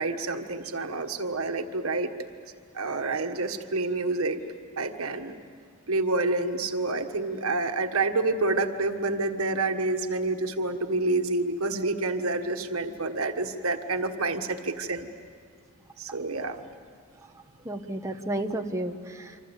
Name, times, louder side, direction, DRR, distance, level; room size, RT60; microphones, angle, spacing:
voice 1, 0.0-2.1 2.7-4.4 4.8-5.4 5.9-15.1 16.0-16.6, right 2 dB, 85° right, 6 dB, 1.5 m, -28 dB
voice 2, 17.2-19.4, right 1 dB, 15° right, 3 dB, 1.2 m, -33 dB
27.5 x 25.5 x 8.2 m, 2.1 s
head